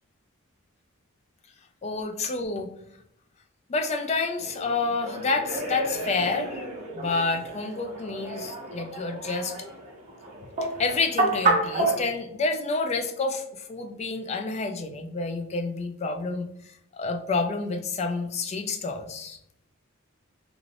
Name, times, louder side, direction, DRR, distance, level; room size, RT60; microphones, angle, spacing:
voice 1, 1.8-2.7 3.7-6.7 6.9-9.5 10.8-13.4 13.7-16.5 17.0-19.4, left 3 dB, 30° left, 4 dB, 0.3 m, -29 dB
sound 1, 4.4-12.0, right 2 dB, 35° right, 0.8 m, -30 dB
2.4 x 2.4 x 3.2 m, 0.75 s
head